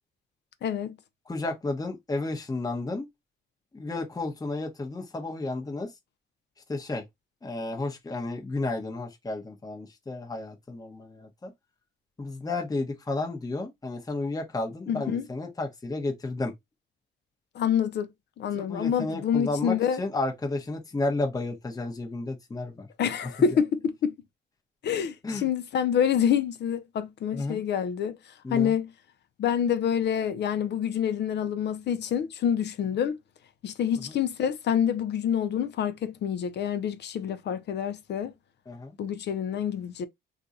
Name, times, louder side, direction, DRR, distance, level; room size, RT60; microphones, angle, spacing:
voice 1, 0.6-1.0 14.9-15.2 17.5-18.1 18.4-20.0 23.0-24.2 24.8-28.2 28.5-28.9 29.4-33.1 33.6-38.3 39.0-40.1, left 8 dB, 60° left, 0.5 m, -27 dB
voice 2, 1.3-3.1 3.7-5.9 6.7-7.0 7.4-11.5 12.2-16.5 18.5-22.9 25.2-25.5 27.3-27.6 28.4-28.7 38.7-39.0, left 2 dB, 20° left, 0.9 m, -32 dB
2.5 x 2.2 x 4.0 m
cardioid pair, 90°, 20 cm